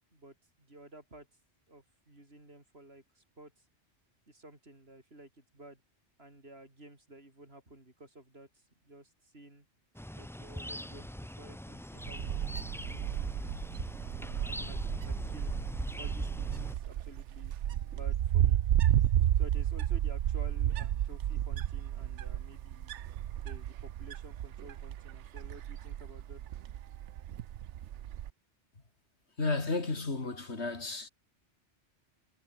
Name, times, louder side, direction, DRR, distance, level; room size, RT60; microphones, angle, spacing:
voice 1, 0.1-1.3 1.7-3.5 4.3-5.8 6.2-9.7 10.1-13.5 13.9-15.5 16.0-17.5 17.8-18.6 19.3-22.9 23.4-26.4, right 1 dB, 60° right, 6.0 m, -53 dB
sound 1, 9.9-16.8, equal, 5° left, 0.4 m, -41 dB
Wind, 12.0-28.3, right 11 dB, 85° right, 1.0 m, -32 dB
voice 2, 29.4-31.1, left 3 dB, 70° left, 3.3 m, -33 dB
omnidirectional pair, 1.2 m